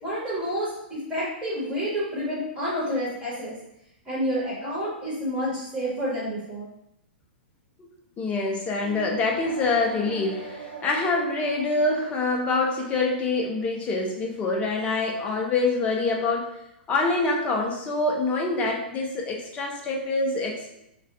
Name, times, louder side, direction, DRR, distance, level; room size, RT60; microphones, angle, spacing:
voice 1, 0.0-3.5 4.0-6.7, equal, 15° right, -9 dB, 1.3 m, -29 dB
voice 2, 8.2-16.5 16.9-20.6, left 3 dB, 25° left, -1 dB, 0.6 m, -25 dB
sound 1, 8.7-14.7, right 4 dB, 75° right, 0.7 m, -41 dB
2.4 x 2.4 x 3.3 m, 0.81 s
figure-of-eight pair, 105°, 6 cm